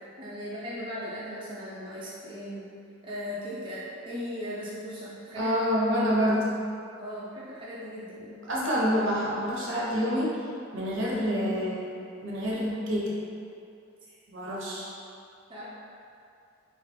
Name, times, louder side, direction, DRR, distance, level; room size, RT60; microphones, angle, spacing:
voice 1, 0.2-2.6 3.0-3.8 4.0-5.5 7.0-8.2 14.1-14.2 15.5-15.6, equal, 25° right, -9 dB, 0.5 m, -38 dB
voice 2, 5.4-6.6 8.2-10.4 10.7-11.9 12.2-13.2 14.3-14.9, equal, 60° right, -5 dB, 0.8 m, -27 dB
3.8 x 2.5 x 3.5 m, 2.5 s
head